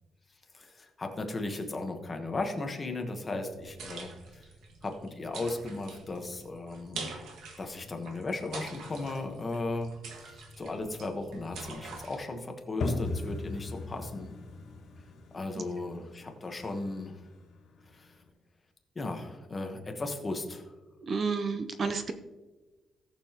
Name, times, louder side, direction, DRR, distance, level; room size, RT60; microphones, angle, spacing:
voice 1, 0.5-4.5 4.8-7.1 7.6-14.3 15.3-17.3 17.9-18.2 18.9-20.7, left 2 dB, 20° left, 4 dB, 1.1 m, -36 dB
sound 1, 3.5-12.2, right 3 dB, 75° right, 1.6 m, -45 dB
sound 2, 12.8-18.3, left 3 dB, 60° left, 3.3 m, -38 dB
voice 2, 21.0-22.1, right 4 dB, 35° right, 9 dB, 0.5 m, -31 dB
18.0 x 6.9 x 2.9 m, 1.2 s
cardioid pair, 175°, 0 cm